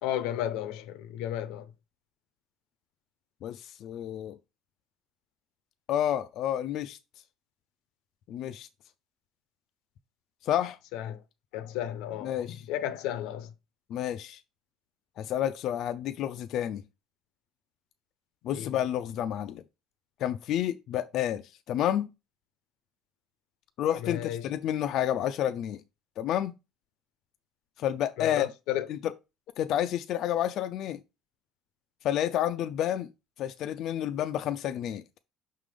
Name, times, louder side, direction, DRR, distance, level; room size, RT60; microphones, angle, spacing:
voice 1, 0.0-1.7 10.9-11.2 11.5-12.3 12.7-13.5 18.5-18.7 24.0-24.4 28.2-28.9, left 11 dB, 85° left, 0.8 m, -33 dB
voice 2, 3.4-4.4 5.9-7.0 8.3-8.7 10.4-10.8 12.2-12.6 13.9-14.4 15.2-16.8 18.4-19.6 20.2-21.4 21.7-22.1 23.8-25.8 26.2-26.5 27.8-28.5 28.9-29.1 29.6-31.0 32.0-33.1 33.4-35.2, left 11 dB, 45° left, 0.4 m, -30 dB
5.8 x 3.7 x 4.9 m
cardioid pair, 180°, 0 cm